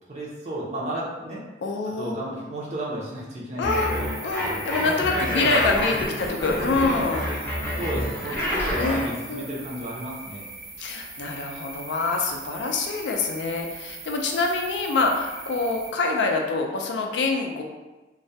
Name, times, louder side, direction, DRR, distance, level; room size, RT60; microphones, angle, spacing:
voice 1, 0.1-1.4 2.0-4.1 4.8-5.7 7.8-10.4, right 1 dB, 35° right, -5 dB, 0.5 m, -32 dB
voice 2, 1.6-2.2 3.6-4.0 4.2-7.2 7.6-7.8 8.8-9.0 9.3-9.5 10.8-17.6, left 3 dB, 60° left, 1 dB, 0.3 m, -26 dB
sound 1, 3.6-9.1, left 1 dB, 10° left, 0.6 m, -28 dB
sound 2, 3.7-15.9, right 4 dB, 85° right, 0.5 m, -40 dB
sound 3, 4.6-10.0, left 1 dB, 70° right, 0.9 m, -46 dB
2.3 x 2.1 x 2.6 m, 1.1 s
head